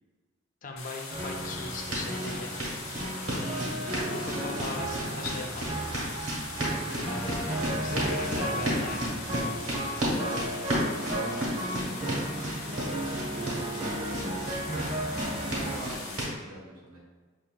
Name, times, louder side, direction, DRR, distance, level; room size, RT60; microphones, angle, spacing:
voice 1, 0.6-2.5 3.3-5.7 7.0-9.2, left 3 dB, 40° left, 2 dB, 0.4 m, -39 dB
sound 1, 0.8-16.3, left 3 dB, 75° left, 0.7 m, -42 dB
sound 2, 1.1-15.8, right 1 dB, 30° right, 0.5 m, -34 dB
sound 3, 1.8-16.3, right 1 dB, 70° right, 1.2 m, -34 dB
voice 2, 2.0-2.7 6.5-8.5 9.0-9.4 10.7-14.8 15.2-17.0, equal, 90° right, -3 dB, 1.2 m, -45 dB
5.6 x 2.7 x 2.2 m, 1.4 s
head